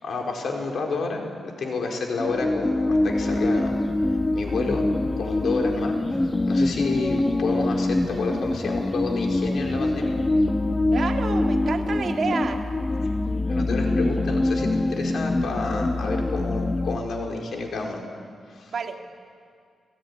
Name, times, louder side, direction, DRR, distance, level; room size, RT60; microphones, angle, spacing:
voice 1, 0.0-3.7 4.3-4.9 5.2-6.2 6.5-10.2 13.5-18.0 18.5-18.7, left 3 dB, 70° left, 1 dB, 4.5 m, -29 dB
sound 1, 2.2-17.0, left 2 dB, 20° left, 1.6 m, -24 dB
voice 2, 10.9-12.6 18.7-19.0, right 5 dB, 55° right, 3 dB, 2.4 m, -29 dB
29.0 x 17.0 x 9.7 m, 2.2 s
wide cardioid pair, 115°, 0 cm